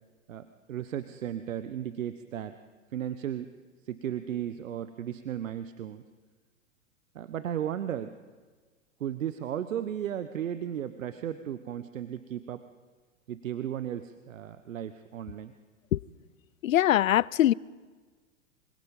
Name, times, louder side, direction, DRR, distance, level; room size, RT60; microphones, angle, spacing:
voice 1, 0.3-2.5 2.9-3.5 3.8-6.0 7.1-8.2 9.0-12.6 13.3-15.5, right 10 dB, 75° right, 11 dB, 1.2 m, -35 dB
voice 2, 16.6-17.5, left 13 dB, 80° left, 24 dB, 0.6 m, -22 dB
26.5 x 25.5 x 5.4 m, 1.4 s
hypercardioid pair, 110°, 39 cm